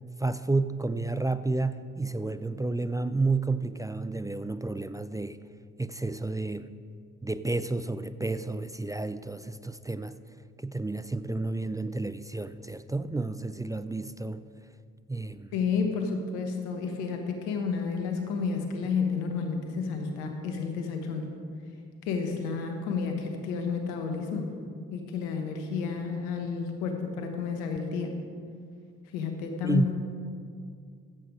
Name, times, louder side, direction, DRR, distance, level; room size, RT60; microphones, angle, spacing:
voice 1, 0.2-5.4 5.8-6.7 7.2-10.2 10.6-14.4 15.1-15.5 29.6-29.9, right 3 dB, 10° right, 13 dB, 0.4 m, -31 dB
voice 2, 15.5-21.3 22.0-24.6 24.9-28.1 29.1-29.8, left 5 dB, 90° left, 4 dB, 1.2 m, -31 dB
15.0 x 7.9 x 4.8 m, 2.2 s
hypercardioid pair, 45°, 34 cm